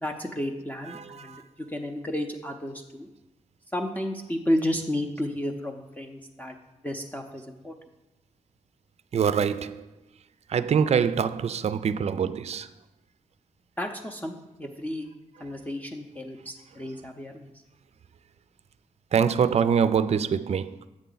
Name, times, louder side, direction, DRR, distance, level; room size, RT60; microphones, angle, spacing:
voice 1, 0.0-3.1 3.7-6.6 6.8-7.7 13.8-15.1 15.4-17.5, left 1 dB, 10° left, 0.6 m, -32 dB
voice 2, 0.9-1.4 9.1-9.9 10.5-12.7 19.1-20.8, right 7 dB, 50° right, 0.4 m, -24 dB
7.3 x 5.5 x 3.9 m
cardioid pair, 65°, 14 cm